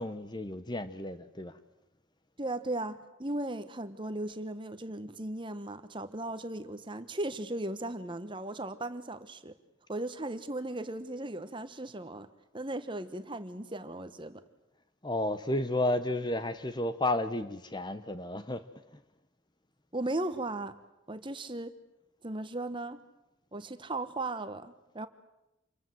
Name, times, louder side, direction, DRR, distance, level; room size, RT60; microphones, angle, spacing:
voice 1, 0.0-1.5 15.0-18.7, left 1 dB, 20° left, 1.0 m, -32 dB
voice 2, 2.4-9.5 9.9-12.3 12.5-14.4 19.9-20.8 21.1-21.8 22.2-23.0 23.5-25.1, right 2 dB, 25° right, 1.3 m, -37 dB
28.0 x 23.0 x 7.9 m
head